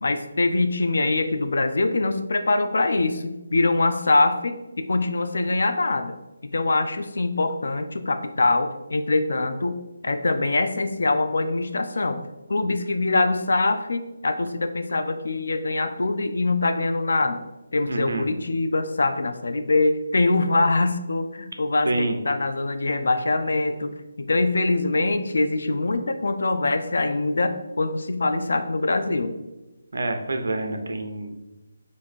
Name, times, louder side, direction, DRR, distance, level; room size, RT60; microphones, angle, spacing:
voice 1, 0.0-6.1 6.4-9.8 10.0-12.2 12.5-17.4 17.7-29.3, left 2 dB, 70° left, 8 dB, 0.4 m, -23 dB
voice 2, 17.9-18.3 21.9-22.2 29.9-31.3, right 2 dB, 75° right, 5 dB, 0.5 m, -27 dB
3.0 x 2.6 x 4.1 m, 1.1 s
hypercardioid pair, 175°, 0 cm